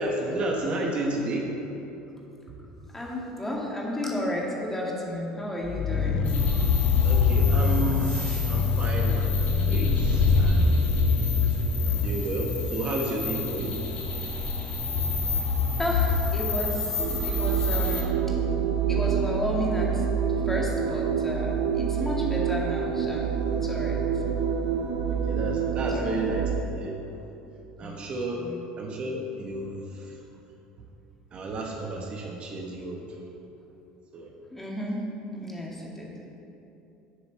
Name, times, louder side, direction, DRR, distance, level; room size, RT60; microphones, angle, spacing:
voice 1, 0.0-1.5 7.0-11.0 11.8-13.8 25.1-27.0 27.8-28.4 28.8-30.1 31.3-33.0 34.1-34.3, right 2 dB, 40° right, -1 dB, 1.1 m, -32 dB
voice 2, 2.9-6.3 8.7-8.8 10.1-10.2 11.9-12.0 15.3-15.4 15.8-18.2 18.9-20.0 20.4-24.2 25.8-26.1 27.8-27.9 28.4-28.8 34.5-35.0 35.4-36.1, left 1 dB, 10° left, -3 dB, 1.9 m, -32 dB
Growling, 5.6-10.6, left 6 dB, 35° left, 0.5 m, -25 dB
sound 1, 6.2-18.0, left 4 dB, 55° left, 2.0 m, -26 dB
sound 2, 17.0-26.6, right 7 dB, 80° right, 0.5 m, -27 dB
7.9 x 5.2 x 7.4 m, 2.9 s
supercardioid pair, 110°, 3 cm